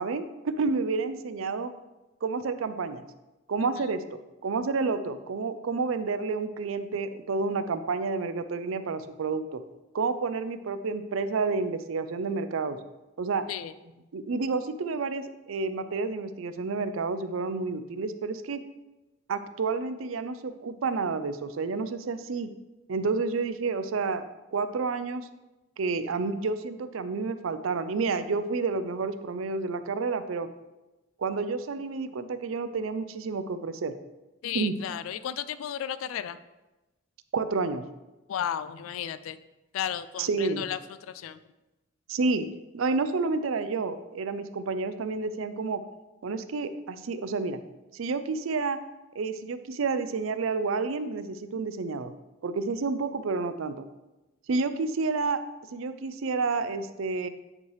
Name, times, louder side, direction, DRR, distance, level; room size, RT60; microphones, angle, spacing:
voice 1, 0.0-1.7 2.2-3.0 3.5-9.6 9.9-12.8 13.2-13.4 14.1-18.6 19.3-22.5 22.9-24.3 24.5-25.3 25.8-30.5 31.2-33.9 34.5-34.7 37.3-37.9 40.2-40.7 42.1-42.5 42.7-45.8 46.2-47.6 47.9-48.8 49.2-52.1 52.4-53.8 54.5-55.4 55.7-57.3, right 4 dB, 90° right, 11 dB, 0.5 m, -30 dB
voice 2, 34.4-36.4 38.3-39.4 39.7-41.4, left 9 dB, 90° left, 13 dB, 0.3 m, -34 dB
9.7 x 4.7 x 3.2 m, 1.0 s
head